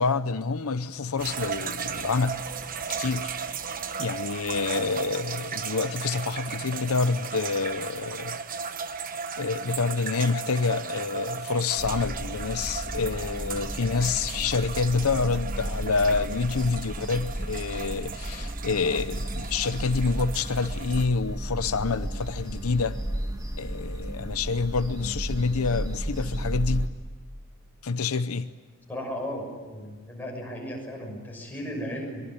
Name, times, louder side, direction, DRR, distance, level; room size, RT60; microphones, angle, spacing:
voice 1, 0.0-2.4 3.0-3.3 4.0-8.4 9.4-23.0 23.6-26.9 27.8-28.5, left 4 dB, 75° left, 0.7 m, -27 dB
sound 1, 1.2-21.1, right 6 dB, 40° right, 1.1 m, -36 dB
sound 2, 11.8-26.9, right 1 dB, 15° right, 1.6 m, -33 dB
voice 2, 28.9-32.2, equal, 10° left, 6.7 m, -35 dB
23.0 x 22.5 x 9.7 m
head